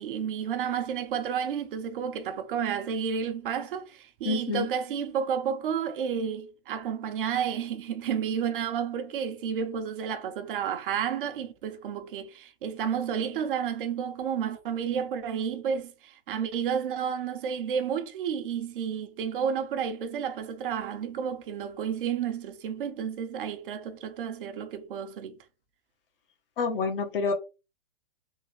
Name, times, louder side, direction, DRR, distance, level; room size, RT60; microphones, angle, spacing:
voice 1, 0.0-25.4, right 7 dB, 60° right, 0.9 m, -31 dB
voice 2, 4.2-4.7 26.6-27.3, left 4 dB, 65° left, 1.3 m, -27 dB
3.7 x 3.1 x 3.0 m
hypercardioid pair, 130°, 30 cm